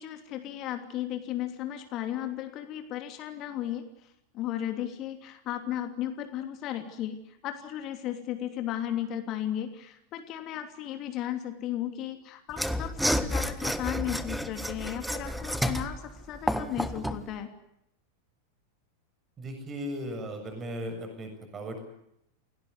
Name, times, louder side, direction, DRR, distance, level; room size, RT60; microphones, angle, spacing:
voice 1, 0.0-17.5, left 11 dB, 35° left, 6 dB, 2.9 m, -35 dB
Mechanisms / Sawing, 12.5-17.2, equal, ahead, 1.5 m, -30 dB
voice 2, 19.4-21.8, equal, 25° right, 6 dB, 7.2 m, -37 dB
28.5 x 18.5 x 9.7 m, 0.80 s
figure-of-eight pair, 90°, 0 cm